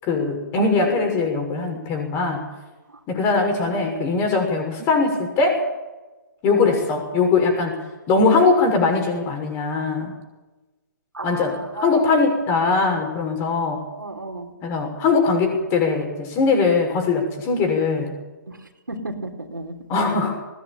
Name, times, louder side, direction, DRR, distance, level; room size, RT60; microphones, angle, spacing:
voice 1, 0.0-2.4 3.1-5.6 6.4-7.8 8.1-10.1 11.2-13.8 14.6-18.1 19.9-20.3, left 4 dB, 25° left, 4 dB, 6.5 m, -21 dB
voice 2, 0.6-1.4 2.9-3.0 3.4-4.1 6.6-6.8 11.1-12.2 14.0-14.5 18.5-18.6 18.9-19.7, right 2 dB, 90° right, 0 dB, 3.8 m, -33 dB
20.5 x 17.5 x 9.1 m, 1.1 s
figure-of-eight pair, 135°, 10 cm